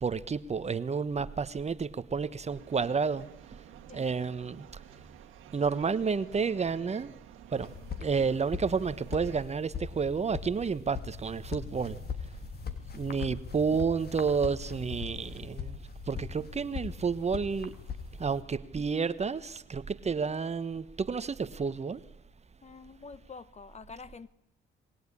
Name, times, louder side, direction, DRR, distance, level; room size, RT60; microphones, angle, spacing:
voice 1, 0.0-3.3 3.9-4.6 5.5-7.1 7.5-7.7 8.0-12.0 12.9-15.8 16.1-17.7 18.2-22.0, right 5 dB, 35° right, 14 dB, 1.2 m, -30 dB
sound 1, 2.5-9.4, right 12 dB, 90° right, 1.6 m, -52 dB
sound 2, 7.5-18.4, left 5 dB, 50° left, 3.4 m, -40 dB
voice 2, 22.6-24.3, left 4 dB, 35° left, 17 dB, 1.3 m, -47 dB
26.5 x 21.0 x 10.0 m, 0.78 s
cardioid pair, 90°, 20 cm